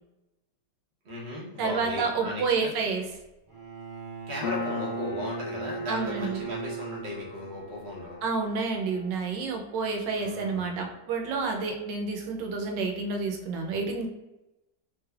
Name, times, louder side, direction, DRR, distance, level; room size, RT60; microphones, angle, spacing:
voice 1, 1.0-2.7 4.3-8.2 10.2-10.6, left 1 dB, 40° right, -5 dB, 0.8 m, -36 dB
voice 2, 1.6-3.0 5.9-6.4 8.2-14.1, right 4 dB, 80° right, 2 dB, 1.2 m, -29 dB
Bowed string instrument, 3.5-7.6, right 6 dB, 10° right, 1.1 m, -38 dB
Piano, 4.4-11.6, left 3 dB, 80° left, 1.3 m, -40 dB
3.2 x 3.1 x 2.3 m, 0.96 s
omnidirectional pair, 1.9 m